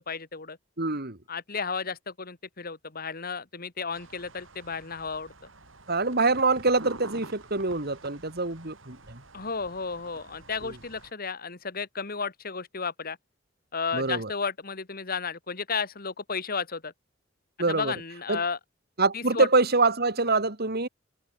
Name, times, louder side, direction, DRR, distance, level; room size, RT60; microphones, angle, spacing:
voice 1, 0.0-0.6 1.3-5.3 9.3-13.2 13.7-16.9 17.7-18.6 19.1-19.5, left 5 dB, 50° left, 2.1 m, -33 dB
voice 2, 0.8-1.2 5.9-9.2 10.6-10.7 13.9-14.3 17.6-17.9 18.3-18.4 19.0-20.9, right 3 dB, 55° right, 2.9 m, -25 dB
sound 1, 3.9-11.1, right 2 dB, 90° right, 6.1 m, -48 dB
head